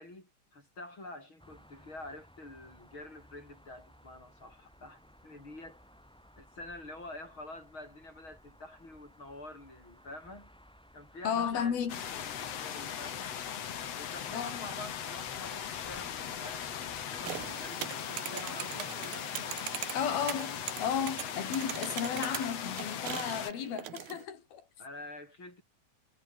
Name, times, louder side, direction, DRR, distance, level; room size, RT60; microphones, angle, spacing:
voice 1, 0.0-5.8 6.4-10.5 10.9-13.4 13.9-19.3 24.8-25.6, left 2 dB, 30° left, 8.6 m, -47 dB
sound 1, 1.4-17.7, equal, ahead, 5.6 m, -58 dB
voice 2, 11.2-12.0 14.3-14.7 19.9-24.7, left 8 dB, 75° left, 5.4 m, -34 dB
sound 2, 11.9-23.5, left 9 dB, 50° left, 2.5 m, -39 dB
sound 3, 17.2-24.3, right 13 dB, 75° right, 3.1 m, -41 dB
omnidirectional pair, 4.3 m